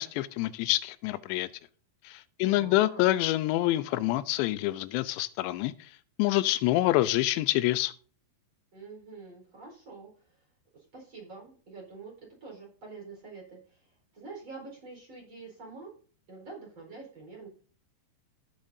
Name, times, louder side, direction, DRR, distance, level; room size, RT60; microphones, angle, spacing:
voice 1, 0.0-1.5 2.0-5.9 6.2-7.9, left 16 dB, 90° left, 2.8 m, -27 dB
voice 2, 2.4-3.1 8.7-10.4 10.7-12.1 12.4-15.9 16.3-17.5, right 4 dB, 30° right, 4.7 m, -46 dB
16.0 x 7.6 x 2.7 m
omnidirectional pair, 4.9 m